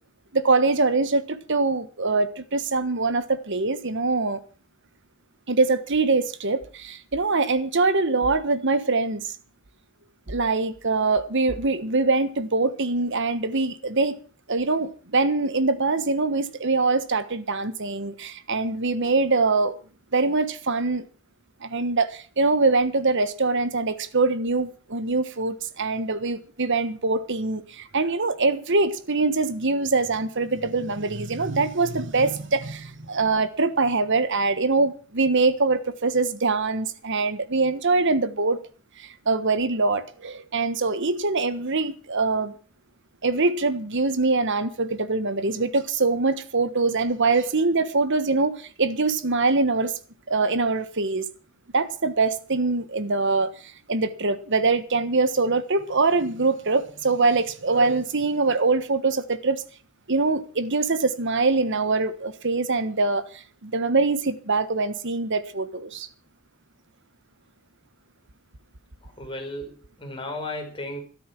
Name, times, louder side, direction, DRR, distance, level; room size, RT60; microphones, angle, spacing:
voice 1, 0.3-4.4 5.5-9.2 10.3-14.2 14.5-19.8 20.1-21.0 21.6-38.6 39.0-42.5 43.2-49.9 50.3-51.3 51.7-59.6 60.1-66.1, right 3 dB, 55° right, 1.4 m, -23 dB
voice 2, 69.0-71.0, left 1 dB, 25° left, 4.9 m, -35 dB
13.0 x 13.0 x 6.1 m
head